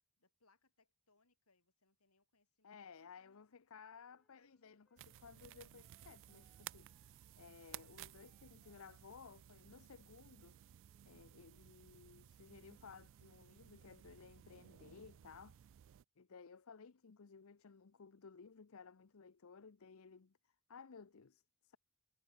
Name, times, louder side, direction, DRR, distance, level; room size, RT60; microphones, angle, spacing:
voice 1, 0.2-3.5 4.3-4.9, left 3 dB, 85° left, 7.5 m, -77 dB
voice 2, 2.6-10.6 11.0-15.6 16.2-21.8, left 5 dB, 70° left, 0.7 m, -58 dB
Wind instrument woodwind instrument, 3.9-11.4, left 1 dB, 5° left, 6.7 m, -83 dB
sound 1, 5.0-16.0, right 12 dB, 60° right, 0.3 m, -58 dB
head